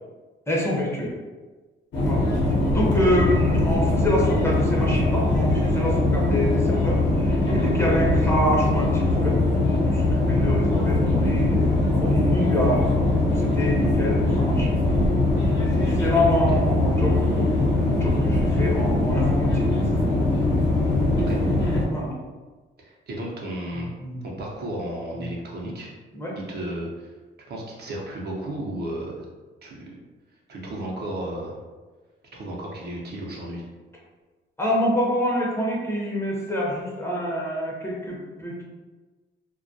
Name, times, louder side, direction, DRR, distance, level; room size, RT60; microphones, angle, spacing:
voice 1, 0.5-1.1 2.0-2.2 2.7-9.4 9.8-14.7 15.6-19.6 19.9-20.2 21.9-22.2 23.7-24.2 25.1-25.3 26.1-26.3 34.6-38.6, equal, 15° left, -4 dB, 0.6 m, -26 dB
sound 1, 1.9-21.9, left 2 dB, 65° left, 0.8 m, -21 dB
voice 2, 22.8-23.9 24.2-25.9 26.5-27.1 27.5-29.3 29.6-30.0 30.5-31.6 32.3-33.6, right 1 dB, 55° right, -3 dB, 0.6 m, -33 dB
2.2 x 2.1 x 2.6 m, 1.3 s
cardioid pair, 90°, 20 cm